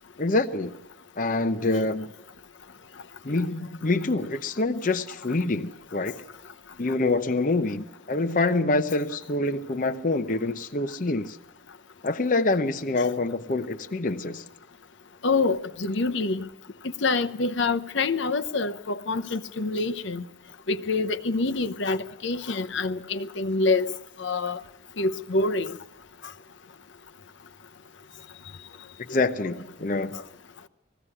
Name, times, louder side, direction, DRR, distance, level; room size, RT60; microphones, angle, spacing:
voice 1, 0.2-0.7 1.2-2.1 3.2-6.2 6.8-11.4 12.0-14.4 29.1-30.2, left 2 dB, 40° left, 0.7 m, -26 dB
voice 2, 15.2-16.4 17.0-20.2 20.7-23.9 24.2-24.6 25.0-25.7, left 3 dB, 70° left, 0.8 m, -26 dB
20.0 x 15.5 x 9.7 m
head